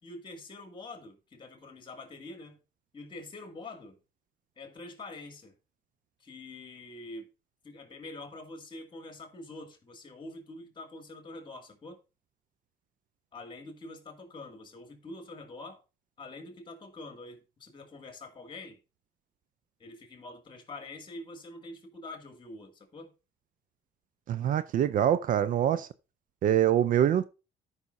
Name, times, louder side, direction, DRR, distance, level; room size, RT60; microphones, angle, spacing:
voice 1, 0.0-2.6 2.9-4.0 4.6-5.5 6.2-7.3 7.6-12.0 13.3-15.8 16.2-18.8 19.8-23.1, left 2 dB, 30° left, 2.3 m, -45 dB
voice 2, 24.3-25.9 26.4-27.3, right 10 dB, 55° right, 0.5 m, -25 dB
13.5 x 5.6 x 2.6 m
cardioid pair, 110°, 17 cm